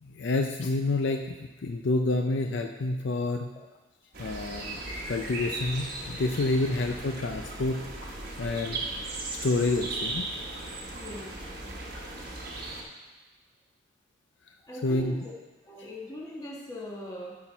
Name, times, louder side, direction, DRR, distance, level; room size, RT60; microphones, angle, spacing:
voice 1, 0.0-3.5 4.2-4.8 5.1-8.8 9.3-10.3 14.8-15.2, left 2 dB, 60° left, 4 dB, 0.5 m, -29 dB
sound 1, 4.1-12.8, right 2 dB, 50° right, 1.1 m, -37 dB
voice 2, 10.9-11.7 14.6-15.3 15.6-17.4, left 1 dB, 20° left, -3 dB, 1.3 m, -40 dB
12.5 x 4.4 x 4.4 m, 1.2 s
head